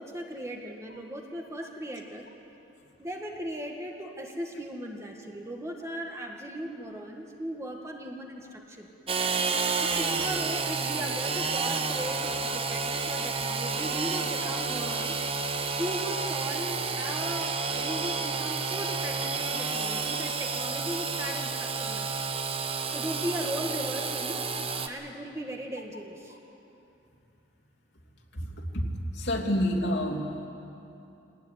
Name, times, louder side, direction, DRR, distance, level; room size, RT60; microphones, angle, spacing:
voice 1, 0.0-2.3 3.0-8.9 9.5-15.3 15.8-22.2 22.9-24.4 24.9-26.4, equal, 15° right, 1 dB, 1.7 m, -37 dB
Engine / Sawing, 9.1-24.9, right 4 dB, 30° right, 1.0 m, -30 dB
voice 2, 28.3-28.9 29.1-30.3, equal, 65° left, 0 dB, 3.0 m, -28 dB
22.5 x 19.0 x 9.6 m, 2.8 s
head